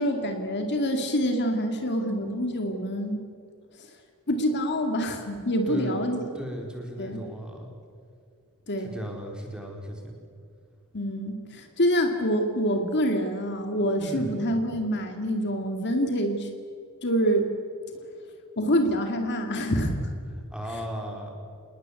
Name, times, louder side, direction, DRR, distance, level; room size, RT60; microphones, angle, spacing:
voice 1, 0.0-3.3 4.3-6.3 7.0-7.3 8.7-8.9 10.9-16.5 17.0-17.5 18.6-20.1, equal, 50° left, 5 dB, 2.3 m, -26 dB
voice 2, 5.7-6.0 6.3-7.7 8.8-10.1 14.0-14.4 20.5-21.3, equal, 5° right, 1 dB, 4.4 m, -36 dB
27.0 x 20.0 x 8.3 m, 2.3 s
head